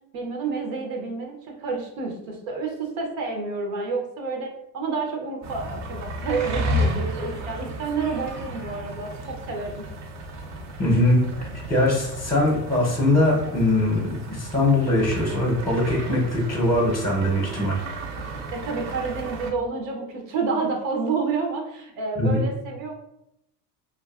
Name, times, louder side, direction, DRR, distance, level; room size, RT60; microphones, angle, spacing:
voice 1, 0.1-4.5 4.7-9.9 18.5-22.9, right 4 dB, 85° right, 2 dB, 0.7 m, -29 dB
sound 1, 5.4-19.5, right 1 dB, 35° right, 0.5 m, -33 dB
voice 2, 10.8-11.2 11.7-17.8 22.2-22.4, left 1 dB, 5° left, -3 dB, 0.7 m, -21 dB
2.5 x 2.3 x 2.3 m, 0.80 s
supercardioid pair, 85°, 49 cm